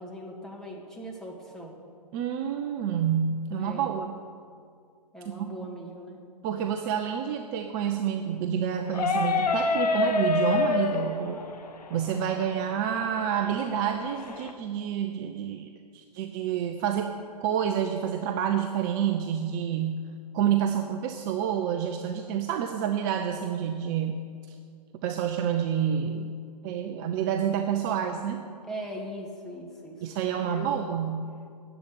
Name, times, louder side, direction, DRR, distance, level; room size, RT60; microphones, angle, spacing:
voice 1, 0.0-1.7 3.5-3.8 5.1-6.2 28.6-30.1 30.4-30.7, equal, ahead, -2 dB, 1.9 m, -40 dB
voice 2, 2.1-4.1 5.3-5.5 6.4-11.4 11.9-17.1 17.4-20.0 20.3-24.2 25.0-26.3 26.6-28.4 30.0-31.3, right 8 dB, 30° right, 6 dB, 0.6 m, -28 dB
sound 1, 8.9-14.5, left 4 dB, 70° left, 1.3 m, -28 dB
11.0 x 8.1 x 8.8 m, 2.3 s
hypercardioid pair, 130°, 21 cm